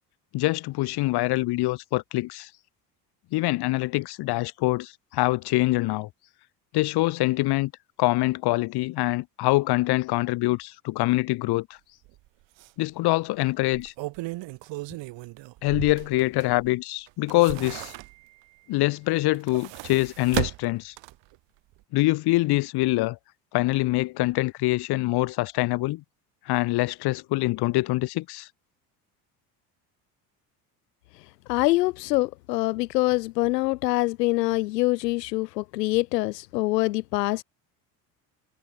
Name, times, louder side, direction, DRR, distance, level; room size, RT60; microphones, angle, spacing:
voice 1, 0.3-2.5 3.3-6.1 6.7-7.7 8.0-11.8 12.8-13.9 15.6-17.9 18.7-20.9 21.9-23.2 23.5-26.0 26.5-28.5, left 20 dB, 50° left, 1.0 m, -24 dB
sound 1, 12.0-12.2 12.6-12.7 13.6-16.7 17.1-18.4 19.2-21.4 21.7-21.8, right 20 dB, 60° right, 5.7 m, -35 dB
voice 2, 31.5-37.4, left 19 dB, 80° left, 0.8 m, -25 dB
hypercardioid pair, 70°, 48 cm